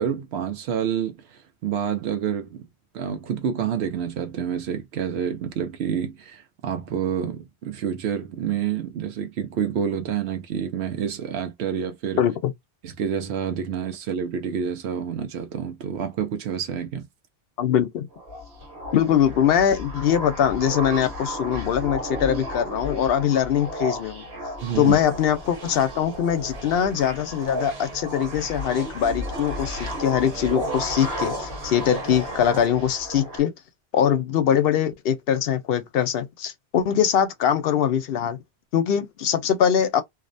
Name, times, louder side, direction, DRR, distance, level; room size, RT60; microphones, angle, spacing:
voice 1, 0.0-2.6 2.9-12.2 12.8-17.1 24.6-25.0, right 8 dB, 90° right, 0.9 m, -28 dB
voice 2, 12.2-12.5 17.6-18.1 18.9-24.2 24.8-33.5 33.9-38.4 38.7-40.0, left 9 dB, 70° left, 0.8 m, -22 dB
sound 1, 18.1-33.4, equal, 70° right, 1.2 m, -33 dB
Conversation, 24.6-33.0, right 3 dB, 40° right, 0.9 m, -43 dB
2.5 x 2.1 x 2.5 m
omnidirectional pair, 1.1 m